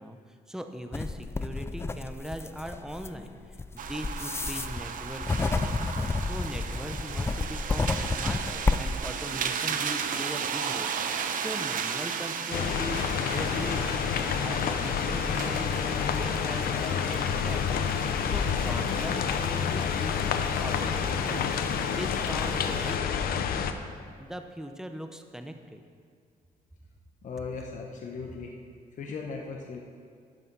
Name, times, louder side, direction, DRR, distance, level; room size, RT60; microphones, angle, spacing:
voice 1, 0.0-13.0 13.3-23.7 24.1-25.8, equal, 5° right, 6 dB, 0.8 m, -40 dB
sound 1, 0.9-9.0, left 3 dB, 15° left, 0.4 m, -30 dB
sound 2, 3.8-23.0, right 7 dB, 55° right, 0.8 m, -36 dB
sound 3, 12.5-23.7, left 7 dB, 65° left, 0.7 m, -28 dB
voice 2, 27.2-28.5 29.0-29.8, left 4 dB, 50° left, 0 dB, 1.1 m, -37 dB
11.5 x 9.8 x 4.1 m, 2.1 s
cardioid pair, 105°, 16 cm